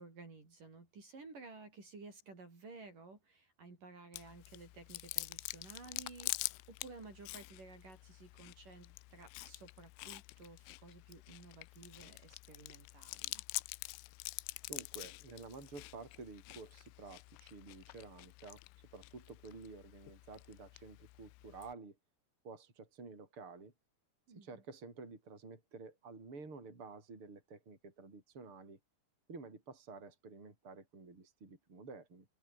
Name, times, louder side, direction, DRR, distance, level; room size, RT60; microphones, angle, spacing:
voice 1, 0.0-13.4 24.3-24.6, right 3 dB, 40° right, 7.3 m, -54 dB
Chewing mastication, 4.1-21.7, left 24 dB, 85° left, 3.1 m, -46 dB
voice 2, 14.7-18.6 18.9-22.0 22.4-23.7 24.3-28.8 29.3-32.3, right 4 dB, 25° right, 6.4 m, -51 dB
omnidirectional pair, 5.9 m